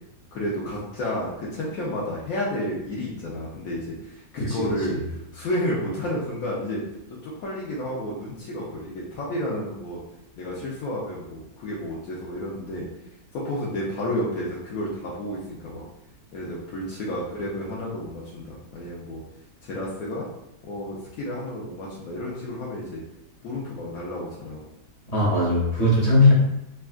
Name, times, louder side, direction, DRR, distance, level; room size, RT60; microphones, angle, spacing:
voice 1, 0.3-6.8 7.1-10.0 10.4-12.9 13.3-15.8 16.3-19.2 19.6-20.3 20.6-23.0 23.4-24.6, left 1 dB, 75° left, -6 dB, 1.1 m, -31 dB
voice 2, 25.1-26.3, left 2 dB, 50° left, -6 dB, 0.4 m, -19 dB
3.5 x 2.2 x 2.4 m, 0.83 s
omnidirectional pair, 1.6 m